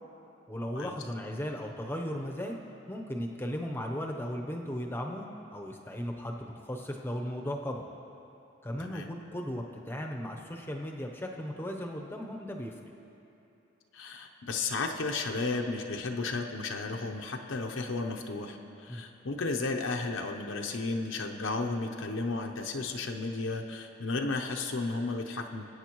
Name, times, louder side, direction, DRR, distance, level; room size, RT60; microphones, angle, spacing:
voice 1, 0.5-2.6 2.9-5.3 5.5-7.9 8.6-12.7 18.9-19.0, equal, 10° left, 2 dB, 0.7 m, -36 dB
voice 2, 13.9-25.7, left 3 dB, 80° left, 2 dB, 0.7 m, -33 dB
20.5 x 9.0 x 3.0 m, 2.9 s
head